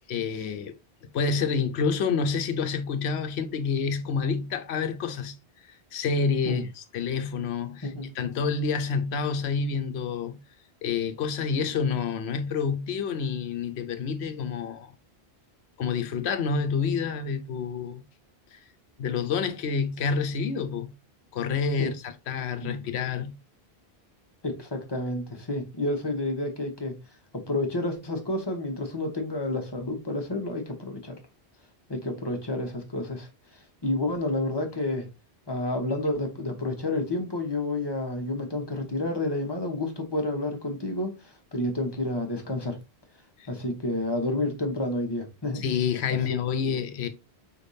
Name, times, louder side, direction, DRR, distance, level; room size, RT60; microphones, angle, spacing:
voice 1, 0.1-0.7 1.1-5.4 5.7-6.6 6.9-10.4 10.8-14.9 15.8-18.0 18.5-18.6 19.0-20.9 21.3-23.3 43.4-43.5 45.5-47.1, left 5 dB, 75° left, 0.9 m, -28 dB
voice 2, 7.8-8.2 21.8-21.9 22.6-22.8 24.4-27.0 27.3-31.2 31.9-35.1 35.5-42.8 43.5-45.6 46.6-46.8, left 2 dB, 25° left, 1.0 m, -30 dB
4.7 x 3.4 x 2.6 m
omnidirectional pair, 1.1 m